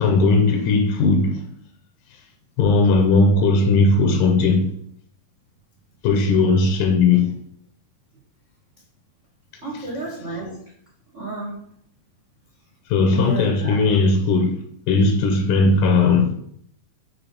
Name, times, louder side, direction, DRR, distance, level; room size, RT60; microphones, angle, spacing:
voice 1, 0.0-1.4 2.6-4.7 6.0-7.3 12.9-14.6 14.9-16.3, left 3 dB, 75° left, 2.2 m, -17 dB
voice 2, 9.6-10.6 11.1-11.6 13.0-13.7, right 2 dB, 50° right, 0.8 m, -31 dB
7.1 x 3.7 x 5.2 m
omnidirectional pair, 4.2 m